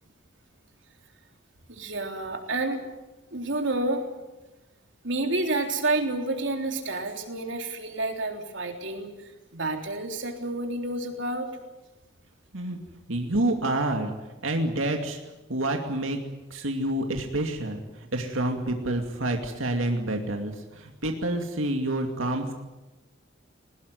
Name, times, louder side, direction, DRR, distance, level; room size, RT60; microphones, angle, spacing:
voice 1, 1.7-2.8 3.3-4.0 5.0-9.1 9.5-11.6, right 2 dB, 65° right, 4 dB, 3.5 m, -29 dB
voice 2, 13.1-14.1 14.4-15.2 15.5-16.2 16.5-17.8 18.1-22.5, right 1 dB, 85° right, 3 dB, 2.6 m, -28 dB
21.5 x 19.5 x 9.5 m, 1.1 s
head